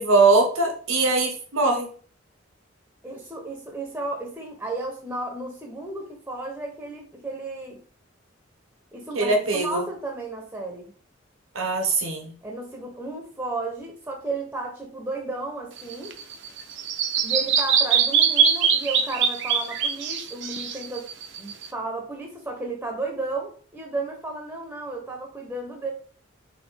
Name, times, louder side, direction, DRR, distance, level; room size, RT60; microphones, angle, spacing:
voice 1, 0.0-1.9 9.1-9.8 11.5-12.3, right 3 dB, 90° right, 3 dB, 1.0 m, -21 dB
voice 2, 3.0-7.8 8.9-10.9 12.4-16.1 17.2-21.1 21.4-25.9, right 2 dB, 10° right, 1 dB, 0.7 m, -33 dB
Bird vocalization bird call bird song, 15.8-21.7, right 7 dB, 60° right, 0.5 m, -23 dB
4.2 x 2.8 x 3.3 m, 0.44 s
head